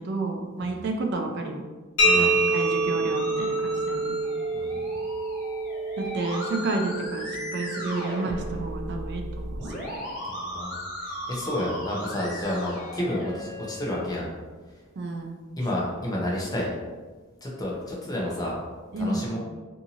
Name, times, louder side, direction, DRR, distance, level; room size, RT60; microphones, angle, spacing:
voice 1, 0.0-1.6 2.1-4.2 6.0-9.8 15.0-15.4 18.9-19.4, right 2 dB, 55° right, 3 dB, 0.4 m, -31 dB
sound 1, 2.0-9.5, right 2 dB, 80° left, 0.8 m, -27 dB
Musical instrument, 2.0-13.9, equal, 40° left, 1.1 m, -36 dB
voice 2, 2.0-2.4 4.5-5.1 10.2-14.3 15.6-16.7 17.4-18.6 19.0-19.4, left 1 dB, 20° left, -4 dB, 0.6 m, -31 dB
2.6 x 2.6 x 2.7 m, 1.4 s
head